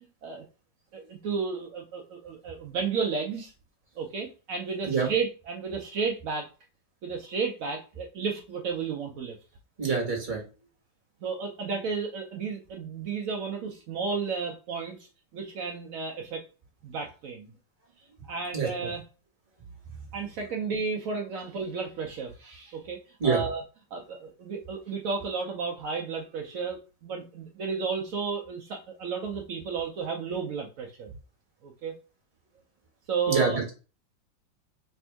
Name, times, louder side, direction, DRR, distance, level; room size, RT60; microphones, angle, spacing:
voice 1, 0.9-3.5 4.0-6.5 7.0-9.4 11.2-15.0 15.3-16.4 16.8-17.5 18.3-19.0 20.1-23.6 23.9-31.1 31.6-31.9 33.1-33.6, right 5 dB, 75° right, 1 dB, 0.7 m, -32 dB
voice 2, 9.8-10.4 18.5-18.9 23.2-23.4 33.3-33.7, right 5 dB, 30° right, 0 dB, 1.2 m, -26 dB
3.5 x 2.6 x 4.4 m, 0.34 s
omnidirectional pair, 2.1 m